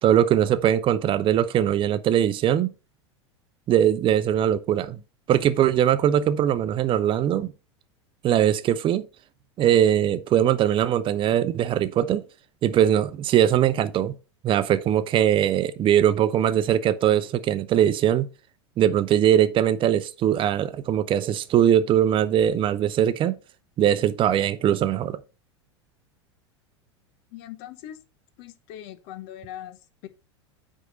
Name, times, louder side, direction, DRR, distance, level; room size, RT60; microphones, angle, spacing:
voice 1, 0.0-2.7 3.7-5.0 5.3-7.5 8.2-9.1 9.6-12.2 12.6-14.1 14.4-18.3 18.8-23.4 23.8-25.2, right 10 dB, 35° right, 0.8 m, -21 dB
voice 2, 27.3-28.0 28.4-30.1, left 12 dB, 50° left, 1.1 m, -41 dB
9.4 x 3.8 x 5.3 m
hypercardioid pair, 90°, 15 cm